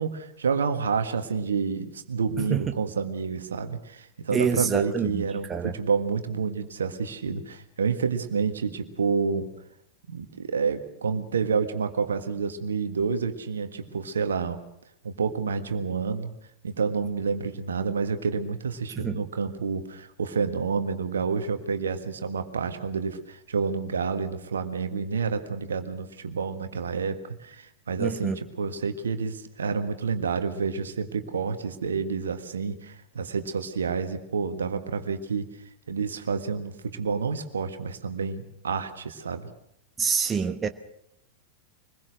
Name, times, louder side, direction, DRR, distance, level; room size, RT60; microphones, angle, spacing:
voice 1, 0.0-9.5 10.1-14.6 15.0-16.3 16.6-35.5 35.9-39.5, right 5 dB, 70° right, 1.7 m, -29 dB
voice 2, 2.4-2.7 4.3-5.2 5.5-5.8 19.0-19.2 28.0-28.4 40.0-40.7, right 6 dB, 20° right, 1.1 m, -27 dB
24.5 x 21.0 x 6.4 m
figure-of-eight pair, 90°, 0 cm